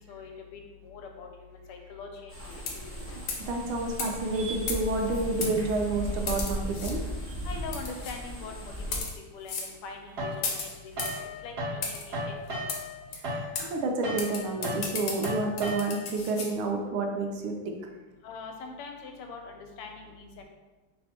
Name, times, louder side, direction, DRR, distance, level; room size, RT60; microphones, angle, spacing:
voice 1, 0.0-2.9 7.4-12.2 18.2-20.4, left 4 dB, 85° left, 3 dB, 1.5 m, -43 dB
sound 1, 2.3-9.0, equal, 20° right, 0.4 m, -36 dB
sound 2, 2.6-2.9 3.3-3.5 4.0-4.1 4.7-5.0 5.4-5.5 6.3-6.9 7.7-8.1 8.8-9.1 9.5-9.7 10.4-11.2 11.8-12.0 12.7-12.8 13.1-13.2 13.5-13.7 14.2-16.5, left 4 dB, 70° left, 1.2 m, -34 dB
voice 2, 3.5-7.0 7.3-7.4 13.1-17.7, right 3 dB, 75° right, 2 dB, 1.4 m, -30 dB
sound 3, 10.2-11.8 12.1-16.2, equal, 55° right, 1.4 m, -35 dB
3.3 x 3.3 x 4.2 m, 1.2 s
omnidirectional pair, 2.4 m